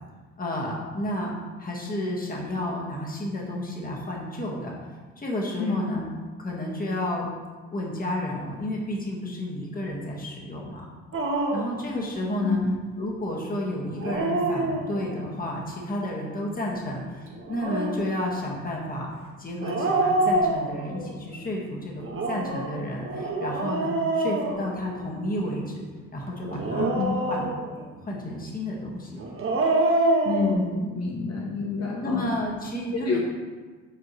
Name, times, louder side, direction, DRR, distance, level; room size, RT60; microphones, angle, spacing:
voice 1, 0.4-1.3 1.6-4.8 5.2-6.0 6.4-7.3 7.7-10.8 11.5-12.6 13.0-19.1 19.4-25.9 26.1-27.0 27.3-27.5 28.0-29.2 32.0-33.2, left 1 dB, 30° left, -2 dB, 1.5 m, -31 dB
Dog, 11.1-11.8 13.8-15.2 17.3-18.1 19.6-21.1 22.0-25.2 26.5-27.9 29.2-30.5, right 2 dB, 45° right, 1.2 m, -26 dB
voice 2, 26.8-27.2 30.2-32.3 32.9-33.2, left 4 dB, 55° left, -2 dB, 1.0 m, -27 dB
8.4 x 4.4 x 3.1 m, 1.4 s
cardioid pair, 90°, 30 cm